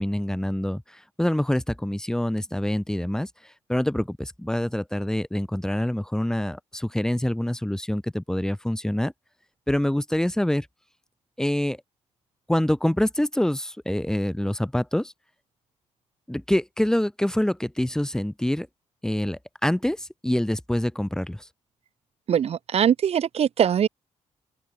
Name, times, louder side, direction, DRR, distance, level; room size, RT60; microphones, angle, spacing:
voice 1, 0.0-3.3 3.7-9.1 9.7-10.7 11.4-11.8 12.5-15.1 16.3-18.7 19.0-21.5, left 1 dB, 5° left, 3.4 m, -26 dB
voice 2, 22.3-23.9, right 9 dB, 60° right, 4.9 m, -22 dB
open air
cardioid pair, 110°, 12 cm